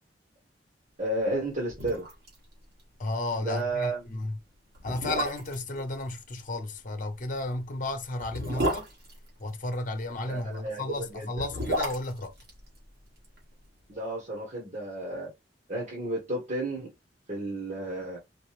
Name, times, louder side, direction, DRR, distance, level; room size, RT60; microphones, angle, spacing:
voice 1, 1.0-2.0 3.4-4.0 10.3-11.4 13.9-15.3 15.7-16.9 17.3-18.2, right 1 dB, 45° right, 1.7 m, -32 dB
sound 1, 1.3-1.4 1.7-2.4 2.6-2.7 3.1-3.3 4.0-4.1 4.7-5.7 7.2-9.9 11.1-13.4 13.6-13.7, right 1 dB, 65° right, 2.0 m, -32 dB
voice 2, 3.0-4.4 4.8-8.8 9.4-12.3, left 2 dB, 50° left, 1.0 m, -33 dB
5.1 x 2.4 x 3.3 m
head